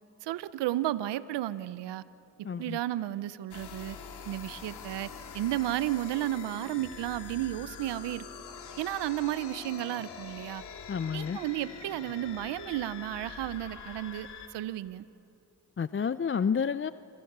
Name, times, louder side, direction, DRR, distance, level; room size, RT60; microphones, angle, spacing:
voice 1, 0.2-2.0 2.6-4.0 4.3-8.3 8.8-10.6 11.1-15.0, right 14 dB, 90° right, 16 dB, 0.7 m, -33 dB
voice 2, 2.4-2.8 10.9-11.4 15.8-16.9, left 6 dB, 30° left, 15 dB, 0.6 m, -30 dB
sound 1, 3.5-14.5, left 6 dB, 75° left, 2.7 m, -44 dB
27.0 x 27.0 x 6.7 m, 2.7 s
supercardioid pair, 55°, 40 cm